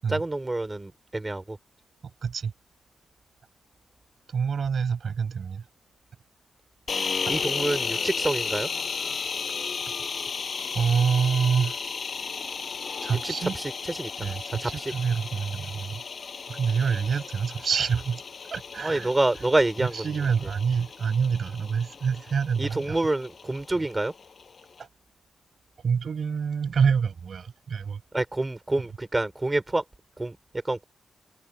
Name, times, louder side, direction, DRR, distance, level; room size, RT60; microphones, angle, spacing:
voice 1, 0.1-1.6 7.3-8.7 13.1-14.3 14.6-14.8 18.8-20.1 22.6-24.1 28.1-29.8 30.2-30.3 30.6-30.8, right 2 dB, 20° right, 5.1 m, -27 dB
voice 2, 2.2-2.5 4.3-5.6 7.3-7.4 10.7-11.8 13.0-13.6 14.2-16.0 16.5-18.2 18.5-19.1 19.8-23.0 24.8-24.9 25.8-28.0, right 6 dB, 60° right, 5.9 m, -26 dB
sound 1, 6.9-24.8, left 5 dB, 50° left, 5.6 m, -34 dB
cardioid pair, 90°, 0 cm